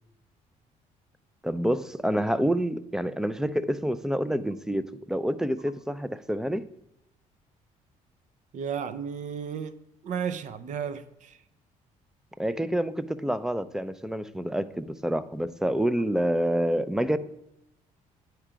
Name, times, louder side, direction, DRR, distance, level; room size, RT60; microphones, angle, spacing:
voice 1, 1.4-6.6 12.4-17.2, equal, 5° right, 14 dB, 0.4 m, -27 dB
voice 2, 8.5-9.7 10.0-11.4, right 7 dB, 60° right, 13 dB, 0.7 m, -33 dB
9.9 x 4.6 x 5.0 m, 0.83 s
cardioid pair, 105°, 14 cm